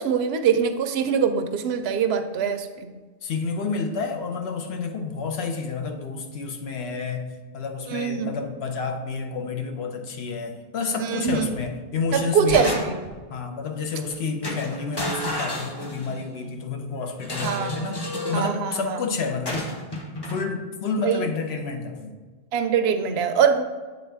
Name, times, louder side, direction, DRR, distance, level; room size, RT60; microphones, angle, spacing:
voice 1, 0.0-2.9 7.9-8.3 11.0-11.5 12.1-13.0 17.4-17.8 18.3-19.0 21.0-21.2 22.5-23.6, right 7 dB, 85° right, 8 dB, 0.8 m, -23 dB
voice 2, 3.2-12.8 13.3-19.6 20.3-22.1, left 4 dB, 90° left, 5 dB, 1.0 m, -29 dB
sound 1, 11.3-11.7 12.1-13.2 14.0-14.1 14.4-16.3 17.2-18.5 19.5-20.4, left 1 dB, 25° left, 0.7 m, -32 dB
7.9 x 3.8 x 3.4 m, 1.4 s
omnidirectional pair, 1.0 m